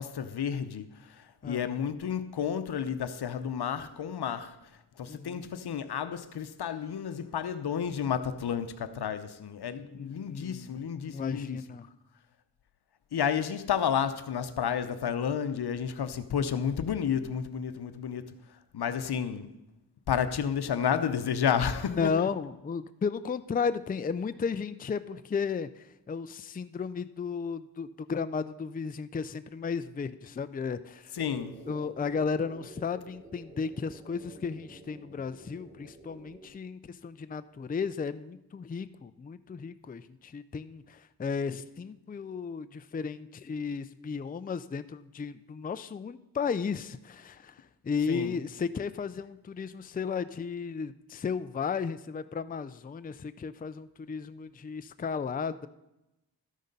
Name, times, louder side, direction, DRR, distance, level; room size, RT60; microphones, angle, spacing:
voice 1, 0.0-4.6 5.0-11.6 13.1-19.5 20.1-22.3 31.1-31.6 48.1-48.4, left 8 dB, 80° left, 0.8 m, -31 dB
voice 2, 5.1-5.5 9.9-11.8 21.9-31.2 31.7-47.6 47.8-55.7, left 5 dB, 25° left, 0.4 m, -34 dB
sound 1, 31.2-36.5, right 2 dB, 15° right, 3.8 m, -50 dB
13.0 x 6.5 x 5.3 m
wide cardioid pair, 80°, 39 cm